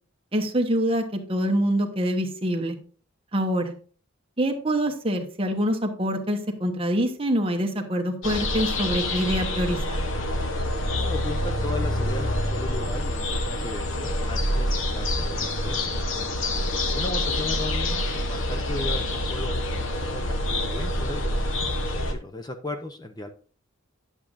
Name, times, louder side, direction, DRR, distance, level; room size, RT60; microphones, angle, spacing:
voice 1, 0.3-2.8 3.3-3.7 4.4-10.0, equal, 25° right, 3 dB, 1.1 m, -25 dB
sound 1, 8.2-22.1, left 1 dB, 65° left, 1.1 m, -27 dB
voice 2, 11.0-15.9 16.9-23.3, left 2 dB, 20° left, 6 dB, 0.6 m, -36 dB
10.5 x 7.3 x 2.6 m, 0.42 s
head